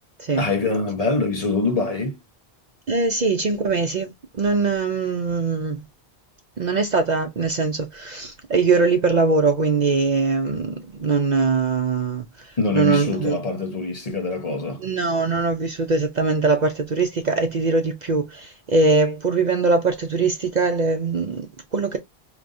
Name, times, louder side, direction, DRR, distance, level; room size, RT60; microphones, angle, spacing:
voice 1, 0.4-2.2 12.6-14.8, left 3 dB, 40° left, 1.0 m, -24 dB
voice 2, 2.9-5.8 6.6-13.4 14.8-22.0, right 4 dB, 50° right, 0.6 m, -22 dB
5.0 x 3.0 x 2.5 m
omnidirectional pair, 1.1 m